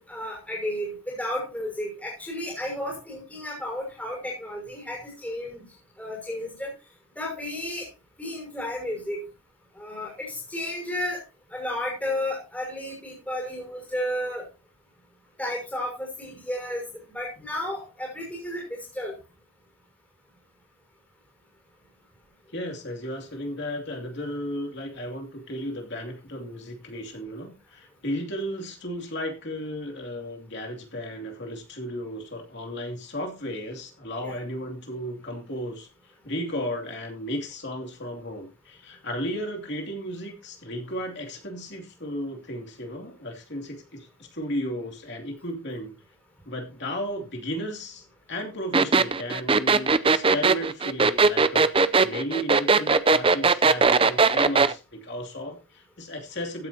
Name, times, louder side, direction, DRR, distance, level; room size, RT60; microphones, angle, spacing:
voice 1, 0.0-5.6 6.0-6.7 7.2-7.9 8.2-9.2 9.7-11.2 11.5-14.4 15.4-19.1 34.2-34.3, left 1 dB, 5° left, -2 dB, 5.9 m, -32 dB
voice 2, 22.5-45.9 46.4-56.7, equal, 50° left, 2 dB, 2.8 m, -34 dB
sound 1, 48.7-54.7, right 4 dB, 25° right, 0.5 m, -19 dB
15.0 x 9.5 x 2.9 m, 0.28 s
head